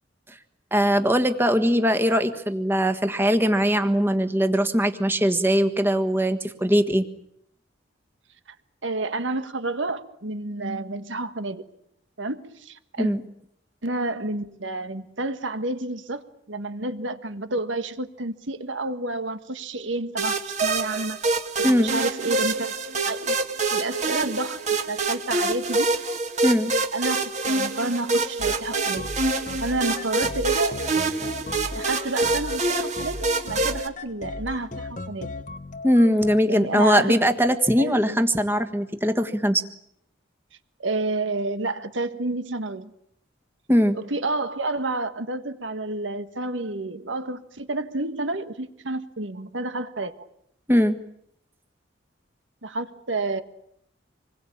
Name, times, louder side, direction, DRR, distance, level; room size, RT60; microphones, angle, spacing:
voice 1, 0.7-7.0 13.0-13.2 21.6-21.9 26.4-26.7 35.8-39.6 43.7-44.0 50.7-51.0, equal, 10° right, 8 dB, 1.5 m, -21 dB
voice 2, 8.8-11.6 12.2-13.1 13.8-16.2 16.5-21.2 21.6-22.7 23.0-23.4 23.7-24.6 24.9-25.9 26.9-29.1 29.6-31.3 31.7-35.3 36.4-37.1 37.8-38.2 40.8-42.9 43.9-50.1 52.6-53.4, right 2 dB, 85° right, 10 dB, 1.6 m, -30 dB
sound 1, 20.2-33.9, right 3 dB, 40° right, 1.9 m, -26 dB
sound 2, 28.4-36.4, left 2 dB, 40° left, 1.0 m, -36 dB
26.5 x 21.0 x 8.6 m, 0.72 s
head